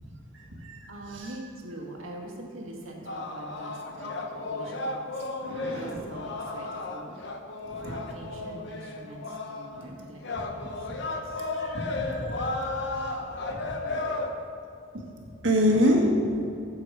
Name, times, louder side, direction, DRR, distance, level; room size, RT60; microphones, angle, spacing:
voice 1, 0.3-1.4 5.4-6.0 7.6-7.9 9.7-10.1 10.3-10.4 10.9-13.2 13.4-14.2 14.9-15.0 15.4-16.4, equal, 65° right, -1 dB, 1.7 m, -29 dB
voice 2, 0.9-5.3 5.6-7.2 7.7-10.2 10.5-11.5 13.2-14.3, right 1 dB, 85° right, -1 dB, 1.8 m, -44 dB
sound 1, 3.1-9.8 10.2-14.3, left 2 dB, 60° left, 0.9 m, -34 dB
8.0 x 7.5 x 6.2 m, 2.7 s
head